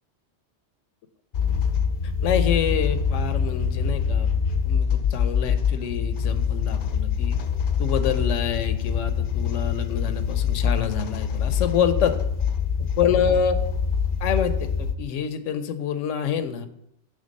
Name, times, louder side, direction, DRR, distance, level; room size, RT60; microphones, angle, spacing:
sound 1, 1.3-14.9, left 6 dB, 55° left, 0.6 m, -24 dB
voice 1, 2.2-4.3 4.6-7.4 7.8-12.1 12.8-13.6 14.2-16.7, left 8 dB, 85° left, 11 dB, 1.0 m, -26 dB
8.9 x 3.4 x 5.3 m, 0.76 s
omnidirectional pair, 1.2 m